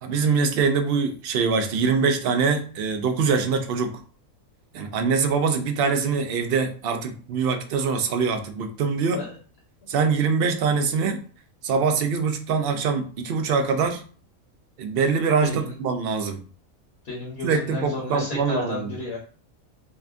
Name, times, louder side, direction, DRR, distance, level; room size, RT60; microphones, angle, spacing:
voice 1, 0.0-4.0 4.7-9.2 9.9-11.2 11.6-14.0 14.8-16.4 17.4-18.9, right 5 dB, 65° right, 6 dB, 0.6 m, -23 dB
voice 2, 15.4-15.7 17.0-19.2, left 2 dB, 50° left, -2 dB, 1.1 m, -32 dB
4.9 x 2.3 x 2.5 m, 0.40 s
omnidirectional pair, 1.5 m